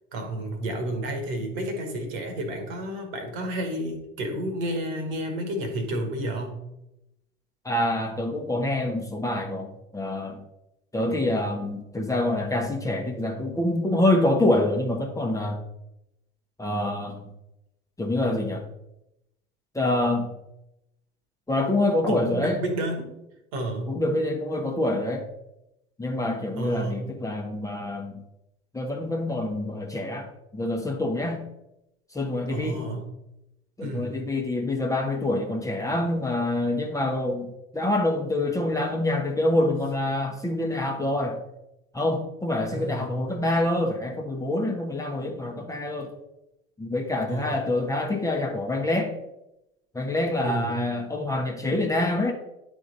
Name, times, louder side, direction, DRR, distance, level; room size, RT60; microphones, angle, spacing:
voice 1, 0.1-6.6 22.1-23.1 23.5-23.9 26.5-27.0 32.5-33.0 33.8-34.2 42.7-43.2 47.3-47.6 50.4-50.8, right 1 dB, 60° right, 5 dB, 1.6 m, -31 dB
voice 2, 7.6-10.4 10.9-15.6 16.6-17.3 18.0-18.7 19.7-20.3 21.5-22.6 23.9-25.2 26.0-28.2 28.7-30.3 30.5-31.5 32.1-32.8 33.8-41.4 41.9-46.1 46.8-49.1 49.9-52.3, left 1 dB, 10° left, 2 dB, 1.0 m, -26 dB
10.0 x 3.6 x 3.9 m, 0.89 s
figure-of-eight pair, 65°, 31 cm